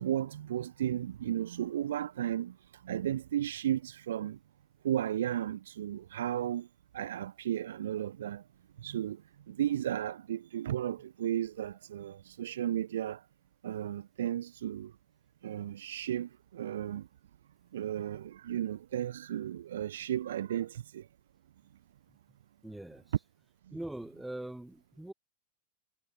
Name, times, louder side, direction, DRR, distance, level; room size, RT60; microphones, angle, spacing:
voice 1, 0.0-2.6 2.8-4.4 4.8-6.7 6.9-8.4 8.8-9.2 9.5-13.2 13.6-14.9 15.4-17.1 17.7-21.1 23.7-23.8, right 11 dB, 60° right, 2.0 m, -34 dB
voice 2, 22.6-23.0 23.7-25.1, right 1 dB, 5° right, 3.1 m, -42 dB
figure-of-eight pair, 90°, 0 cm